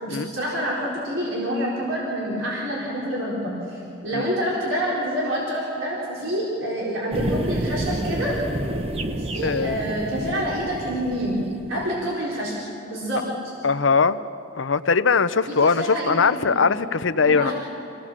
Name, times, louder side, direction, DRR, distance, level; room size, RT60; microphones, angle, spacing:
voice 1, 0.0-8.3 9.2-11.4 11.7-12.6 12.9-13.2 15.5-16.6 17.2-17.5, equal, 80° right, -6 dB, 4.2 m, -27 dB
sound 1, 7.1-12.0, right 1 dB, 30° right, 0.9 m, -29 dB
voice 2, 9.4-9.8 13.6-14.2 14.6-17.5, left 5 dB, 70° left, 13 dB, 0.7 m, -20 dB
27.0 x 18.0 x 7.4 m, 2.9 s
head